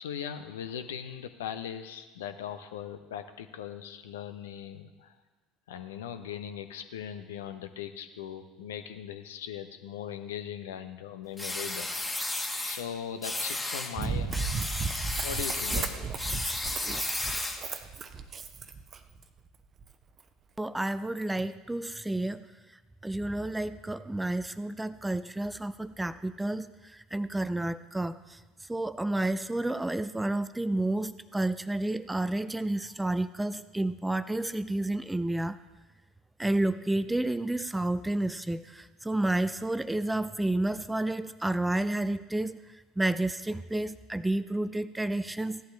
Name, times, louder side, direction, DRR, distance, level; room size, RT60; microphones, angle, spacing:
voice 1, 0.0-5.2 5.7-11.9 12.6-14.5 15.2-16.2, left 9 dB, 70° left, 9 dB, 0.8 m, -39 dB
sound 1, 11.4-12.8 13.2-13.9 14.3-17.7, left 2 dB, 10° left, 1.6 m, -33 dB
Run, 14.0-19.2 19.8-19.9, right 5 dB, 35° right, 0.8 m, -34 dB
voice 2, 20.6-22.5 23.0-28.4 28.7-35.6 36.4-45.6, right 1 dB, 10° right, 14 dB, 0.5 m, -30 dB
16.0 x 11.5 x 3.4 m, 1.2 s
figure-of-eight pair, 65°, 0 cm